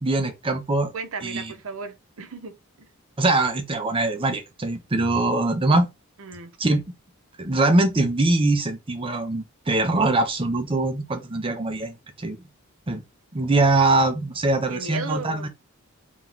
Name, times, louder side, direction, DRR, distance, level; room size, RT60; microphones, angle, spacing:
voice 1, 0.0-0.9 1.2-1.5 3.2-5.9 6.6-6.8 7.4-12.4 12.9-13.0 13.3-15.5, right 2 dB, 25° right, 0.6 m, -22 dB
voice 2, 0.9-2.9 6.2-6.6 14.7-15.5, right 4 dB, 65° right, 0.7 m, -35 dB
3.0 x 2.8 x 3.5 m
head